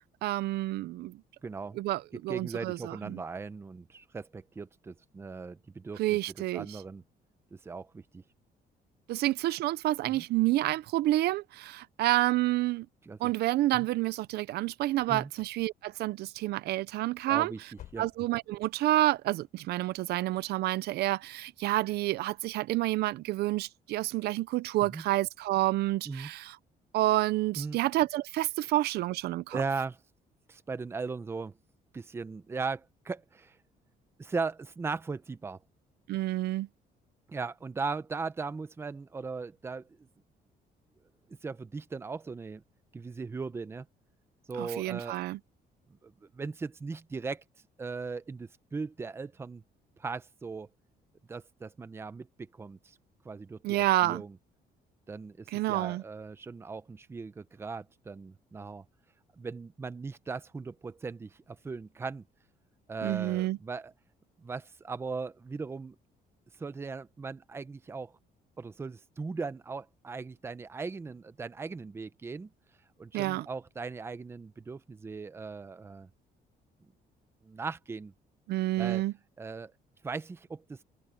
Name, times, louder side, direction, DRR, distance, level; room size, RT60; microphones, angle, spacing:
voice 1, 0.2-1.2 1.7-3.2 6.0-6.8 9.1-12.9 13.2-17.7 18.0-26.6 26.9-29.6 36.1-36.7 44.6-45.4 53.6-54.2 55.5-56.0 63.0-63.6 73.1-73.5 78.5-79.1, right 16 dB, 80° right, 0.6 m, -29 dB
voice 2, 1.4-1.8 2.3-6.2 6.5-7.0 7.5-8.2 10.1-10.2 13.1-13.2 13.7-13.9 15.1-15.3 17.3-17.6 17.9-18.1 24.8-25.0 26.1-26.3 27.6-27.8 29.5-30.0 30.5-31.5 31.9-33.6 34.2-35.6 37.3-40.1 41.4-42.6 42.9-43.9 44.5-45.2 46.0-47.4 47.8-49.6 50.0-50.7 51.3-53.0 53.2-54.3 55.1-58.8 59.4-62.2 62.9-63.9 64.4-66.0 66.6-68.1 68.6-72.5 73.0-76.1 77.4-78.1 78.8-79.0 79.4-79.7 80.0-80.8, right 4 dB, 15° right, 0.7 m, -38 dB
sound 1, 14.9-15.7 15.9-16.4 16.7-16.8 17.2-18.5 18.8-18.9 19.4-19.5, left 11 dB, 60° left, 3.3 m, -54 dB
open air
cardioid pair, 175°, 17 cm